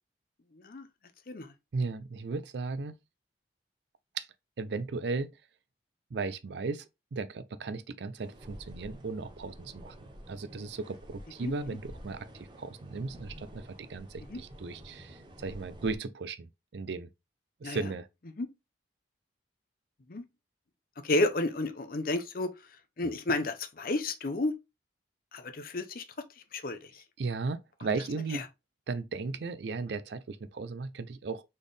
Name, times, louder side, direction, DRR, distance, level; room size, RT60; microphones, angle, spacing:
voice 1, 0.5-0.9 1.3-1.5 11.4-11.8 14.3-14.4 17.6-17.8 18.4-18.5 20.1-20.2 21.0-22.5 23.0-24.5 25.3-26.0 26.5-27.0 28.3-28.4, left 2 dB, 50° left, 0.6 m, -31 dB
voice 2, 1.7-3.0 4.1-4.3 4.6-5.4 6.1-17.1 17.6-18.1 27.2-28.5 28.9-31.4, right 4 dB, 65° right, 0.4 m, -36 dB
sound 1, 8.2-16.0, equal, 25° right, 0.8 m, -49 dB
4.2 x 3.5 x 3.2 m
head